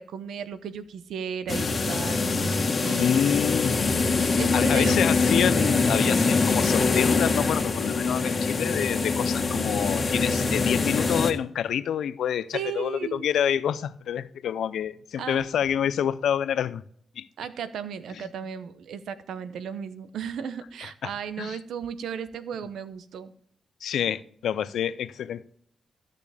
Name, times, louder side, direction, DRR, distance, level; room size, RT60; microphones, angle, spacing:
voice 1, 0.0-2.3 2.8-3.1 4.4-5.0 12.5-13.2 15.2-15.5 17.4-23.3, right 7 dB, 90° right, 0.7 m, -35 dB
sound 1, 1.5-11.3, left 4 dB, 40° left, 1.5 m, -24 dB
voice 2, 3.0-3.9 4.5-16.8 17.2-17.3 18.1-18.3 21.0-21.1 21.4-21.6 23.8-25.5, left 9 dB, 85° left, 0.5 m, -27 dB
14.0 x 6.7 x 3.5 m
cardioid pair, 70°, 0 cm